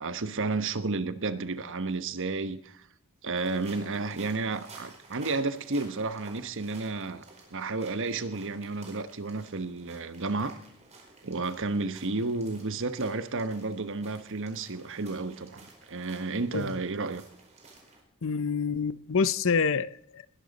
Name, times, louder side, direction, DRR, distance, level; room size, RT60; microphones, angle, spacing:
voice 1, 0.0-2.8 3.2-7.2 7.5-10.6 11.2-17.2, right 3 dB, 60° right, 1.1 m, -32 dB
sound 1, 3.4-18.0, right 3 dB, 30° right, 4.7 m, -53 dB
voice 2, 18.2-20.3, left 5 dB, 65° left, 0.7 m, -27 dB
20.5 x 12.0 x 4.1 m
head